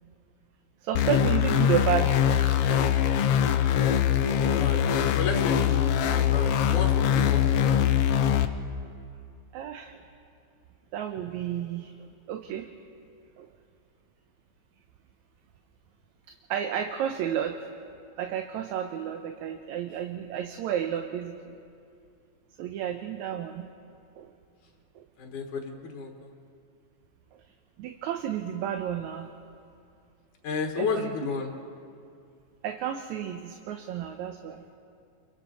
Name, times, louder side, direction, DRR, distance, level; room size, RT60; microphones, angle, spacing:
voice 1, 0.8-2.2 9.5-10.0 10.9-12.7 13.4-13.5 16.5-17.6 18.2-21.6 22.6-23.7 24.2-24.3 25.0-25.1 27.8-29.3 30.8-31.1 32.6-34.6, right 10 dB, 75° right, 5 dB, 2.1 m, -31 dB
sound 1, 0.9-8.5, left 9 dB, 70° left, 1.5 m, -23 dB
voice 2, 5.1-5.8 6.1-7.8 25.2-26.3 30.4-31.5, left 5 dB, 85° left, 2 dB, 2.9 m, -32 dB
29.5 x 23.5 x 4.2 m, 2.4 s
omnidirectional pair, 3.4 m